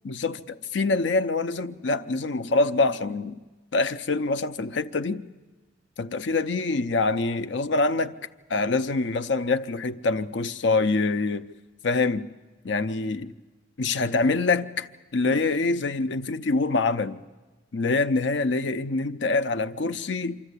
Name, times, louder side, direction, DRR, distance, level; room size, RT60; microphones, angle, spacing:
voice 1, 0.0-3.4 3.7-5.2 6.0-8.1 8.5-11.4 11.8-12.3 12.6-13.3 13.8-14.9 15.1-17.2 17.7-20.4, left 3 dB, 70° left, 0.7 m, -25 dB
25.0 x 13.5 x 8.3 m
head